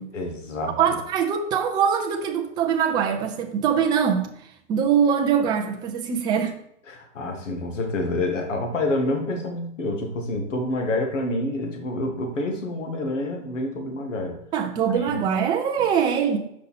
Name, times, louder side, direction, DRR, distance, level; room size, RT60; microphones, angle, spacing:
voice 1, 0.1-0.7 6.9-14.4 15.1-15.2, left 2 dB, 80° left, 3 dB, 1.8 m, -27 dB
voice 2, 0.8-6.5 14.5-16.4, right 7 dB, 10° right, 3 dB, 0.5 m, -23 dB
6.5 x 5.5 x 4.2 m, 0.73 s
hypercardioid pair, 145°, 37 cm